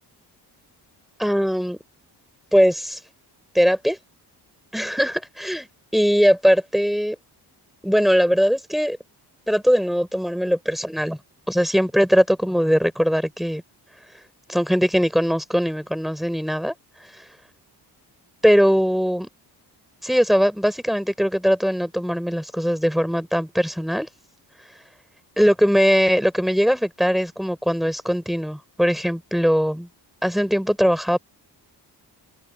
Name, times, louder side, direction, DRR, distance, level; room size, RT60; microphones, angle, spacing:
voice 1, 1.2-1.8 2.5-3.0 3.5-4.0 4.7-5.7 5.9-7.2 7.8-9.0 9.5-11.2 11.5-13.6 14.5-16.7 17.0-17.3 18.4-19.3 20.0-24.1 25.4-29.9 30.2-31.2, equal, ahead, 8.0 m, -20 dB
wide cardioid pair, 160°, 40 cm